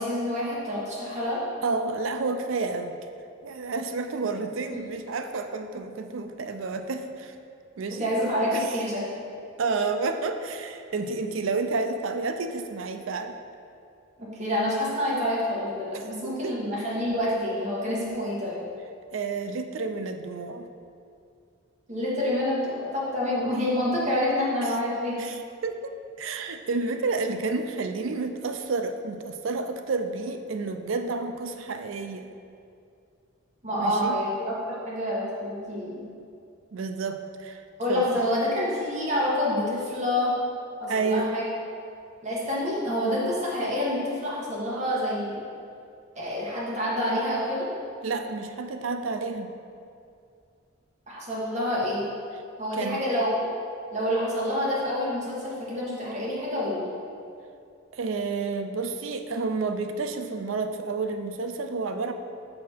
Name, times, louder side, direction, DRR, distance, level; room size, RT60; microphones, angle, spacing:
voice 1, 0.0-1.4 8.0-9.0 14.2-18.6 21.9-25.2 33.6-36.0 37.8-40.3 40.8-41.4 42.2-45.4 46.1-47.7 51.1-52.0 52.6-53.3 53.9-56.8, left 1 dB, 35° right, -6 dB, 1.5 m, -27 dB
voice 2, 1.6-2.9 3.4-7.3 7.8-8.7 9.6-13.4 15.9-16.6 19.1-20.7 24.6-24.8 25.2-32.3 33.8-34.2 36.7-37.6 37.9-38.0 40.9-41.4 48.0-49.5 52.7-53.0 57.9-62.1, right 3 dB, 70° right, 7 dB, 0.5 m, -30 dB
7.2 x 4.3 x 4.5 m, 2.5 s
head